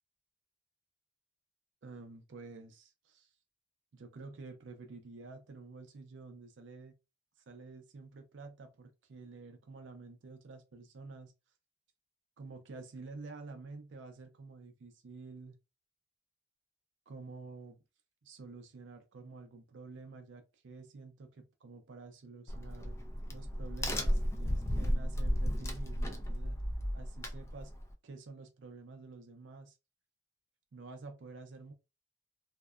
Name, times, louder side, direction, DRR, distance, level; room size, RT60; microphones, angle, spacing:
voice 1, 1.8-3.3 3.9-6.9 7.5-11.3 12.4-15.6 17.1-17.8 18.2-23.0 23.3-26.6 26.9-27.7 28.0-29.8 30.7-31.7, right 3 dB, 75° right, 0.5 m, -49 dB
Crack, 22.5-27.9, equal, 15° left, 0.4 m, -34 dB
2.5 x 2.1 x 2.3 m
head